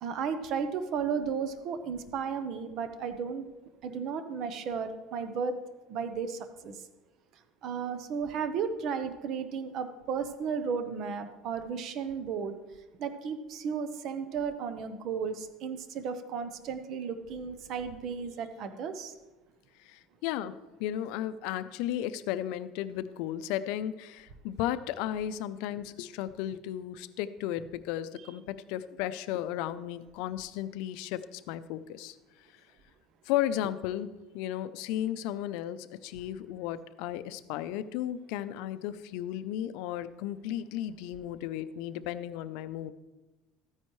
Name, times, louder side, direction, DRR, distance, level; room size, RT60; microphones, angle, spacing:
voice 1, 0.0-3.5 3.8-5.6 5.9-6.8 7.6-12.6 13.0-19.1, right 6 dB, 50° right, 9 dB, 0.9 m, -34 dB
voice 2, 19.8-20.5 20.8-32.2 33.3-42.9, left 12 dB, 75° left, 13 dB, 0.5 m, -34 dB
13.5 x 9.8 x 3.2 m, 1.1 s
cardioid pair, 140°, 0 cm